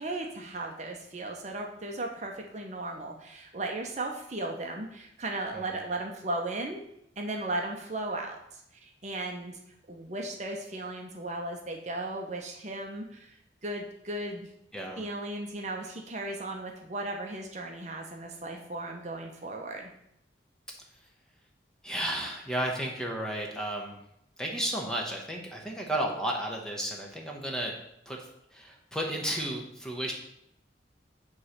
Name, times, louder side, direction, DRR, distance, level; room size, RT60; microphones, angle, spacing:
voice 1, 0.0-6.8 7.2-9.6 9.9-13.3 13.6-14.5 15.0-19.9, right 2 dB, 40° right, 2 dB, 0.8 m, -36 dB
voice 2, 14.7-15.1 21.8-24.0 24.4-27.7 28.1-28.2 28.5-30.1, right 1 dB, 5° left, 0 dB, 1.0 m, -33 dB
8.5 x 3.2 x 6.5 m, 0.78 s
head